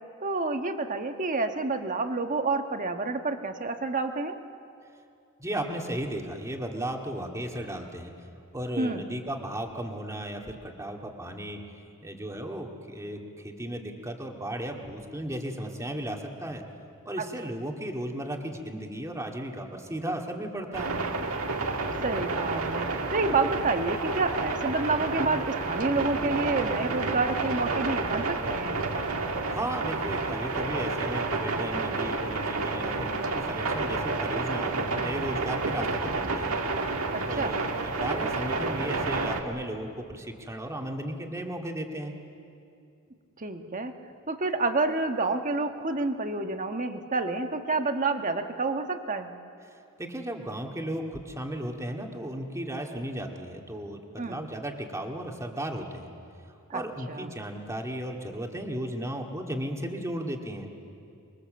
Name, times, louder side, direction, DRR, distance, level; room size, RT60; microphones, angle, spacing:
voice 1, 0.2-4.4 8.8-9.0 17.2-17.3 22.0-28.8 37.1-37.6 43.4-43.9 44.3-49.3 54.2-54.4 56.7-56.8 57.1-57.3, right 3 dB, 40° right, 6 dB, 1.4 m, -29 dB
voice 2, 5.4-8.1 8.5-11.6 12.0-16.6 17.1-20.9 29.5-36.6 37.2-42.1 50.0-56.1 56.7-60.7, right 1 dB, 15° right, 2 dB, 2.1 m, -35 dB
sound 1, 20.7-39.4, right 3 dB, 75° right, 2.0 m, -30 dB
26.0 x 22.5 x 7.7 m, 2.5 s
head